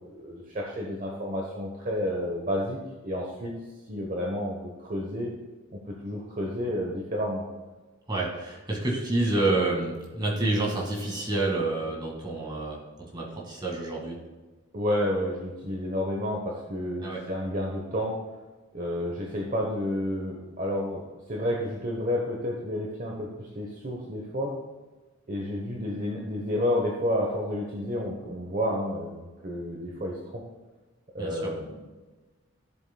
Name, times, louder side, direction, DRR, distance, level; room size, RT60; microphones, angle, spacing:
voice 1, 0.0-2.8 3.0-3.5 3.9-5.3 5.7-7.4 14.7-18.2 18.7-24.5 25.3-30.4 31.1-31.9, left 1 dB, 40° right, -1 dB, 1.0 m, -30 dB
voice 2, 8.1-12.8 13.1-14.2 17.0-17.2 31.2-31.5, right 2 dB, 20° right, -2 dB, 2.0 m, -28 dB
14.0 x 7.5 x 2.3 m, 1.3 s
head